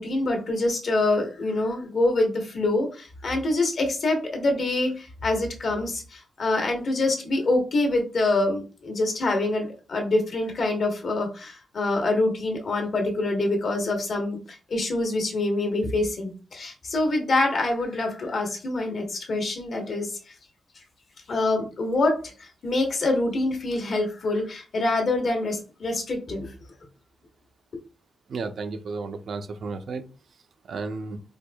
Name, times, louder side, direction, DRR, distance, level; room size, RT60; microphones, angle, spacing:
voice 1, 0.0-20.1 21.3-26.5, left 2 dB, 60° left, 3 dB, 1.1 m, -25 dB
voice 2, 28.3-30.0 30.7-31.2, right 4 dB, 65° right, 8 dB, 0.4 m, -33 dB
4.4 x 2.5 x 2.2 m, 0.35 s
wide cardioid pair, 115°, 0 cm